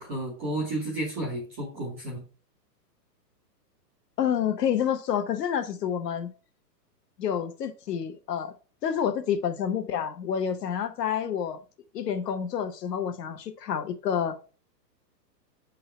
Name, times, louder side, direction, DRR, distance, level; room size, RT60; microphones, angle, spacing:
voice 1, 0.0-2.2, right 1 dB, 10° right, -6 dB, 0.4 m, -32 dB
voice 2, 4.2-6.3 7.2-8.5 8.8-11.6 11.9-14.4, left 8 dB, 70° left, 9 dB, 1.1 m, -28 dB
7.1 x 3.8 x 4.3 m, 0.36 s
hypercardioid pair, 155°, 50 cm